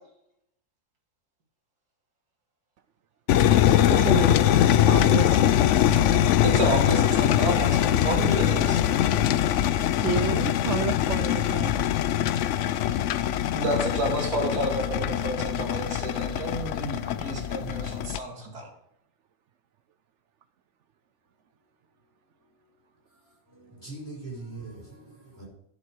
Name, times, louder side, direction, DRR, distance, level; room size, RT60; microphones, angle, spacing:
sound 1, 3.3-18.2, left 11 dB, 65° left, 0.7 m, -22 dB
voice 1, 3.9-4.5 4.9-5.5 10.0-11.7, right 7 dB, 65° right, 0.8 m, -30 dB
voice 2, 6.4-9.2 13.5-18.7, right 1 dB, 85° right, 3.0 m, -30 dB
voice 3, 23.1-25.5, right 3 dB, 10° left, 4.8 m, -42 dB
11.0 x 7.3 x 4.7 m
omnidirectional pair, 1.6 m